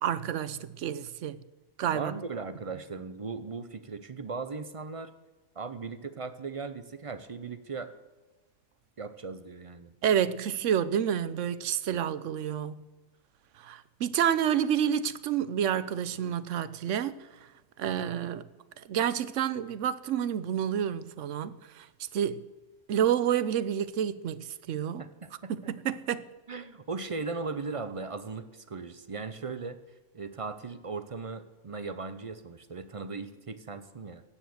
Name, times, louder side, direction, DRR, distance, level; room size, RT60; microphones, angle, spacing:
voice 1, 0.0-1.4 1.8-2.1 10.0-12.8 13.6-17.2 17.8-18.4 18.8-21.9 22.1-22.4 22.9-25.0 25.5-26.3, right 9 dB, 65° right, 0.9 m, -29 dB
voice 2, 1.9-5.1 5.6-7.9 9.0-9.9 25.0-25.7 26.5-29.8 30.1-34.2, right 4 dB, 40° right, 0.4 m, -38 dB
17.0 x 7.2 x 7.8 m
omnidirectional pair, 1.5 m